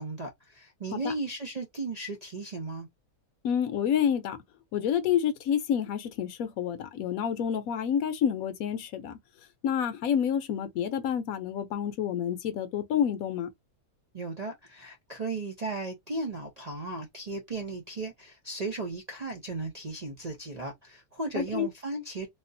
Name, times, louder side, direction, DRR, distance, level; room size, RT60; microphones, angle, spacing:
voice 1, 0.0-2.9 14.1-22.3, right 3 dB, 70° right, 0.3 m, -36 dB
voice 2, 3.4-4.4 4.7-9.2 9.6-13.5 21.4-21.7, left 8 dB, 65° left, 1.0 m, -28 dB
3.6 x 2.4 x 2.6 m
omnidirectional pair, 1.7 m